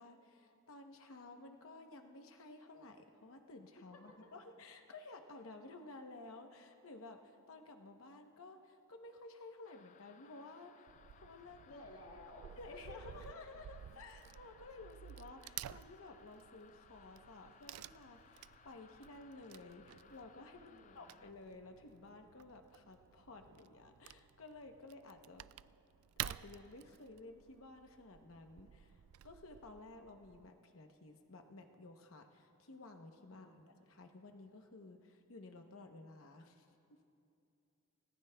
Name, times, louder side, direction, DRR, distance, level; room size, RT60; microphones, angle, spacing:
voice 1, 0.0-11.8 12.6-25.5 26.2-37.0, left 2 dB, 70° left, 5 dB, 0.8 m, -54 dB
voice 2, 3.9-4.3 11.7-13.2 20.7-21.2 33.3-33.7, left 2 dB, 85° left, -1 dB, 1.8 m, -55 dB
sound 1, 9.6-21.3, left 7 dB, 35° left, 0.3 m, -65 dB
Wood / Tearing, 10.9-30.5, right 12 dB, 85° right, 0.3 m, -52 dB
sound 2, 16.8-25.9, right 1 dB, 35° right, 3.1 m, -75 dB
29.5 x 18.0 x 2.2 m, 2.6 s
head